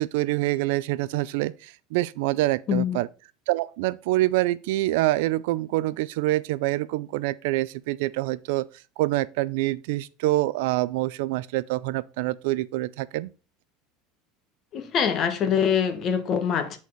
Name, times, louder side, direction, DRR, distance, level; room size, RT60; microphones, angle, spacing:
voice 1, 0.0-3.1 3.5-8.7 9.0-13.3, right 18 dB, 75° right, 0.4 m, -26 dB
voice 2, 2.7-3.0 14.7-16.8, left 7 dB, 35° left, 1.1 m, -24 dB
8.3 x 4.2 x 4.5 m
supercardioid pair, 150°, 0 cm